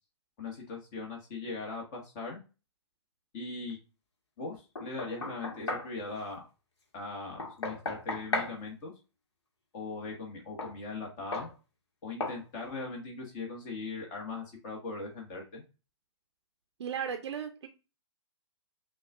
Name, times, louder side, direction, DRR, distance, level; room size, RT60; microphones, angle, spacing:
voice 1, 0.4-2.4 3.3-3.8 4.4-6.4 6.9-8.9 9.7-11.5 12.0-15.6, left 3 dB, 40° left, 0 dB, 1.4 m, -40 dB
Knock, 4.8-5.9 7.4-8.6 10.6-10.8 11.3-11.5 12.2-12.4, left 2 dB, 65° left, 1.3 m, -35 dB
voice 2, 16.8-17.7, right 7 dB, 65° right, 4 dB, 0.6 m, -35 dB
5.8 x 2.3 x 2.5 m, 0.31 s
figure-of-eight pair, 125°, 15 cm